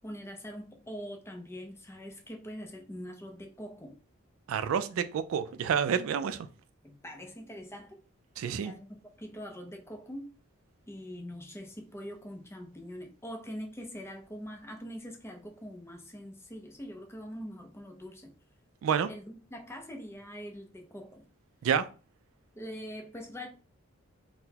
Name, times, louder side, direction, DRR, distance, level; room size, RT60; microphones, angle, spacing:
voice 1, 0.0-3.9 6.8-8.0 8.6-10.2 10.9-18.3 19.1-21.2 22.6-23.5, equal, 10° left, 3 dB, 0.5 m, -43 dB
voice 2, 4.5-6.5 8.4-8.7 18.8-19.1 21.6-21.9, right 7 dB, 70° right, 13 dB, 0.3 m, -29 dB
3.8 x 2.1 x 2.8 m, 0.36 s
head